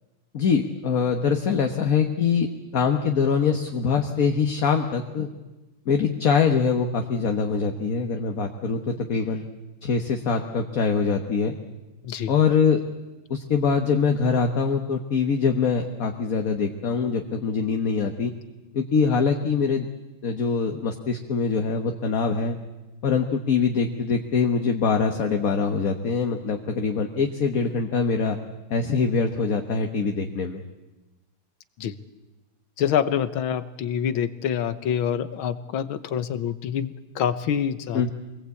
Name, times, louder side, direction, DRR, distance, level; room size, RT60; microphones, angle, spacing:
voice 1, 0.3-2.5 2.7-5.3 5.8-9.4 9.8-11.5 12.3-12.8 13.3-18.3 18.7-19.9 20.2-22.6 23.0-28.4 28.7-30.6 37.9-38.1, left 5 dB, 50° left, 5 dB, 1.5 m, -23 dB
voice 2, 32.8-38.1, left 8 dB, 80° left, 13 dB, 1.9 m, -26 dB
25.5 x 20.0 x 8.4 m, 1.1 s
omnidirectional pair, 2.2 m